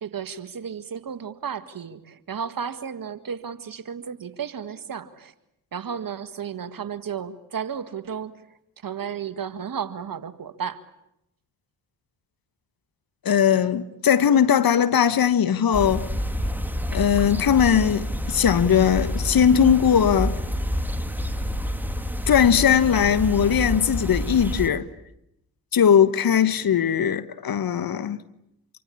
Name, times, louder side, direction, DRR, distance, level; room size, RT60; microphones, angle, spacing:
voice 1, 0.0-5.3 5.7-8.3 8.8-10.8, right 7 dB, 50° right, 1.8 m, -33 dB
voice 2, 13.2-16.1 16.9-20.4 22.3-24.9 25.7-28.2, left 8 dB, 55° left, 1.3 m, -19 dB
sound 1, 15.7-24.7, equal, 5° right, 3.0 m, -28 dB
27.0 x 24.0 x 8.6 m
hypercardioid pair, 40°, 43 cm